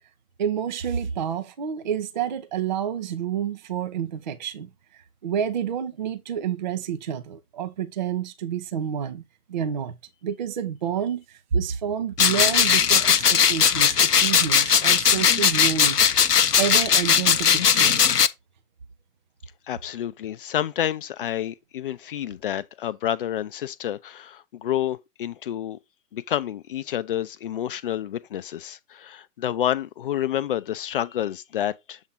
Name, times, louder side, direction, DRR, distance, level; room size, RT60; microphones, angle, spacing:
voice 1, 0.4-4.7 5.2-9.2 9.5-10.0 10.2-16.1 16.6-18.0, right 8 dB, 35° right, 0.4 m, -29 dB
sound 1, 12.2-18.3, left 7 dB, 90° left, 0.6 m, -19 dB
voice 2, 19.7-25.8 26.1-32.0, left 11 dB, 40° left, 0.5 m, -29 dB
7.2 x 2.5 x 5.4 m
figure-of-eight pair, 120°, 46 cm